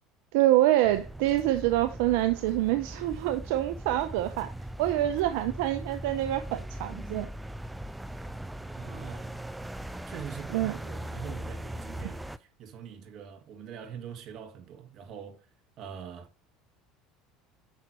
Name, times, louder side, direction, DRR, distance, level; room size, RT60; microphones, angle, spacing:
voice 1, 0.3-4.5 4.8-7.3 10.5-10.7, right 14 dB, 75° right, 0.7 m, -26 dB
sound 1, 0.8-12.4, right 1 dB, 5° right, 0.6 m, -40 dB
voice 2, 8.7-9.5 10.1-15.5 15.8-16.3, right 8 dB, 55° right, 1.8 m, -43 dB
9.3 x 5.9 x 3.0 m
supercardioid pair, 90°, 0 cm